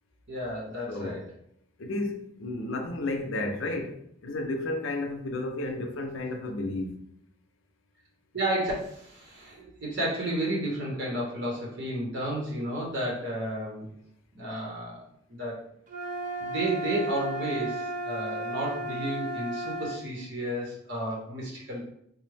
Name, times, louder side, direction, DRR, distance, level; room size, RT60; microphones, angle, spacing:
voice 1, 0.3-1.3 8.3-13.9 14.4-15.1 15.4-15.6 16.4-21.9, right 1 dB, 55° right, -3 dB, 0.8 m, -32 dB
voice 2, 0.9-1.2 1.8-4.0 4.2-7.1, left 2 dB, 75° left, 4 dB, 0.5 m, -32 dB
sound 1, 15.9-20.0, right 1 dB, 40° right, 0.3 m, -34 dB
3.6 x 2.0 x 3.2 m, 0.72 s
head